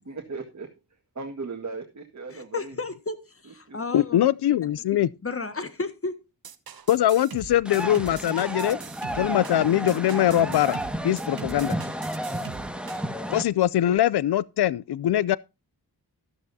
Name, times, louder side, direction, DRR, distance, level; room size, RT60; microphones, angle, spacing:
voice 1, 0.1-0.7 1.2-2.8 3.7-4.0, right 4 dB, 45° right, 1.8 m, -37 dB
voice 2, 2.3-4.2 5.2-6.2, left 3 dB, 35° left, 1.7 m, -33 dB
voice 3, 3.9-5.1 6.9-8.8 9.1-10.8 11.0-11.8 13.3-15.4, left 12 dB, 80° left, 0.5 m, -22 dB
sound 1, 6.4-13.1, right 6 dB, 65° right, 1.2 m, -42 dB
sound 2, 7.6-13.4, right 1 dB, 5° right, 1.6 m, -32 dB
13.0 x 12.5 x 2.7 m
wide cardioid pair, 85°, 39 cm